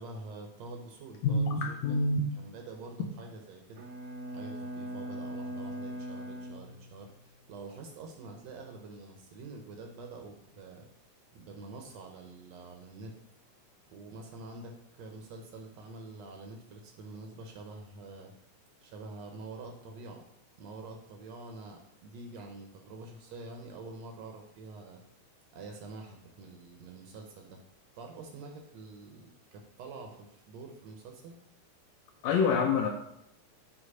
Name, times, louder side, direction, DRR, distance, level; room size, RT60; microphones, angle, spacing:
voice 1, 0.0-3.8 4.3-10.9 11.3-13.2 13.9-18.3 18.8-20.3 20.6-25.0 25.5-27.6 28.0-31.4, right 3 dB, 70° right, 3 dB, 1.9 m, -46 dB
voice 2, 1.2-2.3 32.2-32.9, left 3 dB, 75° left, 3 dB, 1.7 m, -26 dB
Bowed string instrument, 3.8-7.3, equal, 90° right, 2.2 m, -40 dB
8.1 x 3.1 x 5.4 m, 0.76 s
omnidirectional pair, 3.5 m